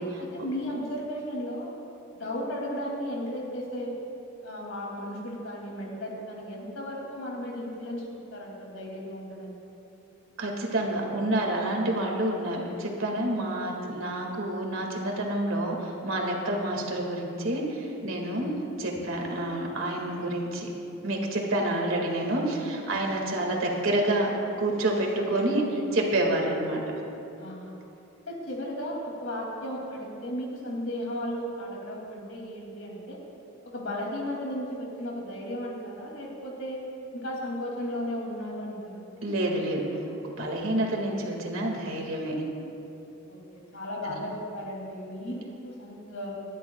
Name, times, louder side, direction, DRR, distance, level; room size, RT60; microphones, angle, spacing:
voice 1, 0.2-1.7 2.1-3.9 4.4-9.6 18.3-18.4 22.8-23.0 27.4-27.7 28.3-33.2 33.6-36.8 37.1-39.0 43.3-46.3, equal, 80° left, -2 dB, 2.6 m, -35 dB
voice 2, 10.4-18.5 18.8-20.7 21.0-26.8 39.2-39.9 40.2-42.4 44.0-44.1, right 1 dB, 80° right, 0 dB, 1.9 m, -28 dB
20.5 x 11.0 x 2.3 m, 2.9 s
head